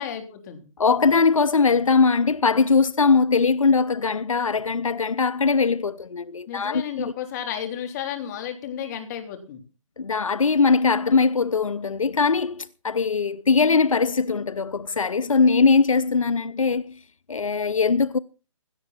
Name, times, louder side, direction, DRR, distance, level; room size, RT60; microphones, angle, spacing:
voice 1, 0.0-0.6 6.5-9.6, left 9 dB, 35° left, 3.7 m, -33 dB
voice 2, 0.8-7.1 10.0-16.9 17.3-18.2, left 4 dB, 85° left, 0.7 m, -21 dB
17.0 x 13.0 x 4.3 m
hypercardioid pair, 145°, 17 cm